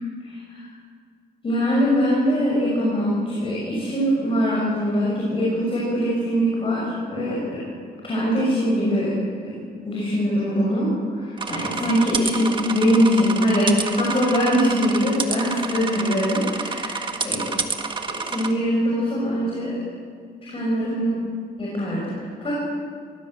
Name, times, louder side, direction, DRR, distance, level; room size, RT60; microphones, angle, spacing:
voice 1, 0.2-0.6 1.4-7.6 8.0-9.1 9.5-9.6 9.8-17.5 18.1-19.7 20.4-21.2 21.6-22.6, equal, 30° left, -5 dB, 6.5 m, -22 dB
sound 1, 11.4-18.5, right 4 dB, 30° right, 1.6 m, -29 dB
24.5 x 19.0 x 8.0 m, 2.1 s
cardioid pair, 165°, 17 cm